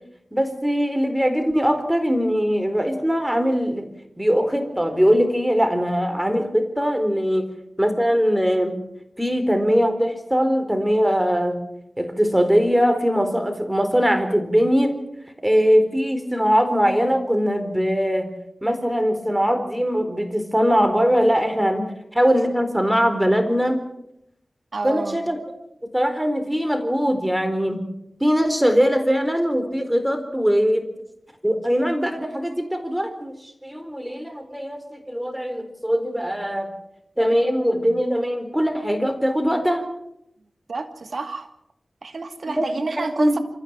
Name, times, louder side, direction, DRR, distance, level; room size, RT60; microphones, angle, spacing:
voice 1, 0.3-3.9 4.2-7.5 7.8-8.8 9.2-11.7 12.0-15.0 15.4-18.3 18.6-23.8 24.8-25.4 25.9-27.8 28.2-30.9 31.4-36.7 37.2-39.8 42.6-42.7 43.0-43.4, equal, 5° right, 7 dB, 4.2 m, -21 dB
voice 2, 24.7-25.2 40.7-41.5 42.0-43.4, right 3 dB, 75° right, 6 dB, 2.3 m, -29 dB
27.0 x 14.5 x 7.5 m, 0.80 s
cardioid pair, 50°, 0 cm